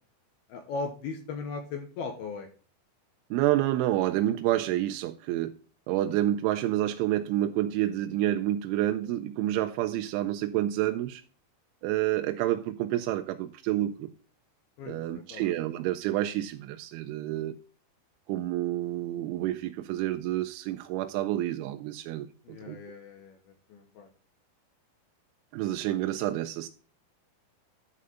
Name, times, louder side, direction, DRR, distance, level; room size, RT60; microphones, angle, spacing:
voice 1, 0.5-2.5 14.8-15.0 15.3-15.4 22.4-24.1, left 4 dB, 70° left, 2.7 m, -38 dB
voice 2, 3.3-5.6 5.9-11.2 11.8-14.1 14.9-17.6 18.3-22.8 25.5-26.7, right 14 dB, 90° right, 3.1 m, -29 dB
11.0 x 5.0 x 5.6 m
omnidirectional pair, 5.3 m